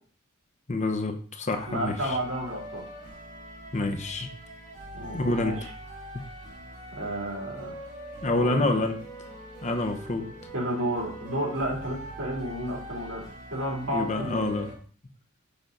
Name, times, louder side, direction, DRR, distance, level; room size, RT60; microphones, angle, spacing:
voice 1, 0.7-2.2 3.7-4.3 5.1-5.6 8.2-9.0 9.6-10.3 13.9-14.7, left 2 dB, 35° left, 6 dB, 0.8 m, -27 dB
sound 1, 1.5-14.8, right 1 dB, 35° right, 2.4 m, -43 dB
voice 2, 1.7-2.8 4.9-5.7 6.9-7.7 8.3-8.8 10.5-14.5, right 1 dB, 65° right, -3 dB, 3.3 m, -32 dB
7.0 x 5.7 x 4.0 m, 0.43 s
head